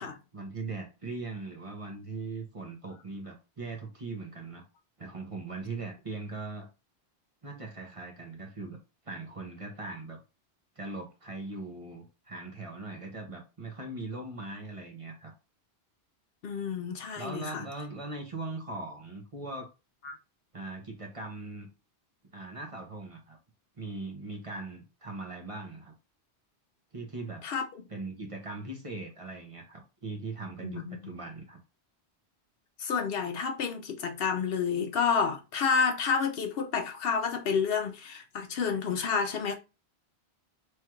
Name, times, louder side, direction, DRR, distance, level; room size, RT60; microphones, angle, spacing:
voice 1, 0.0-4.6 5.0-6.7 7.4-8.8 9.0-10.2 10.8-15.3 17.2-19.7 20.5-21.7 22.3-23.4 23.8-25.9 26.9-27.4 27.9-31.6, right 3 dB, 35° right, 0.7 m, -40 dB
voice 2, 16.4-17.6 20.0-20.1 27.4-27.6 30.6-31.0 32.8-39.5, left 6 dB, 65° left, 0.7 m, -29 dB
3.2 x 2.4 x 4.3 m
omnidirectional pair, 1.1 m